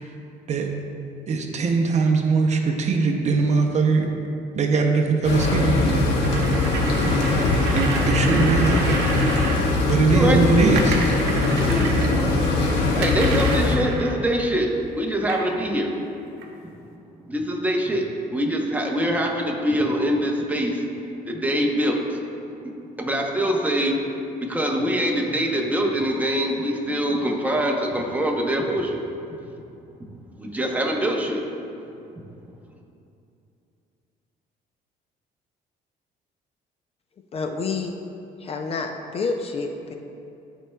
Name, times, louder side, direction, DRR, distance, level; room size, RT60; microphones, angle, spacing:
voice 1, 1.3-4.1 4.5-6.1 7.8-9.0 9.9-11.0, right 4 dB, 40° right, 2 dB, 0.7 m, -21 dB
sound 1, 5.2-13.8, left 2 dB, 80° left, 1.1 m, -21 dB
sound 2, 6.2-9.6 10.8-12.2 13.0-14.2 15.3-15.5 16.4-16.5, right 4 dB, 85° right, 0.8 m, -31 dB
voice 2, 10.1-10.4 11.6-12.4 13.0-14.7 15.0-16.0 17.2-18.0 18.3-20.8 21.3-22.2 23.0-24.0 24.4-29.0 30.4-31.4, equal, 10° right, 0 dB, 0.8 m, -24 dB
voice 3, 37.3-38.0 38.4-39.9, left 4 dB, 35° left, 4 dB, 0.4 m, -28 dB
12.0 x 4.5 x 2.3 m, 2.7 s
cardioid pair, 110°, 17 cm